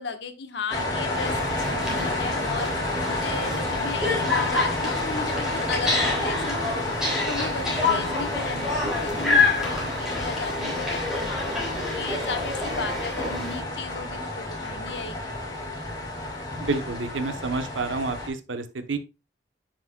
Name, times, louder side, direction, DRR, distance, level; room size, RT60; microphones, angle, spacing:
voice 1, 0.0-2.7 3.1-6.4 7.3-15.3, left 4 dB, 65° left, 7 dB, 1.1 m, -35 dB
sound 1, 0.7-18.3, left 2 dB, 20° left, 2.1 m, -30 dB
sound 2, 1.1-13.6, left 3 dB, 5° right, 3.6 m, -28 dB
voice 2, 16.6-19.0, right 3 dB, 85° right, 9 dB, 0.8 m, -29 dB
9.5 x 6.1 x 2.2 m, 0.28 s
head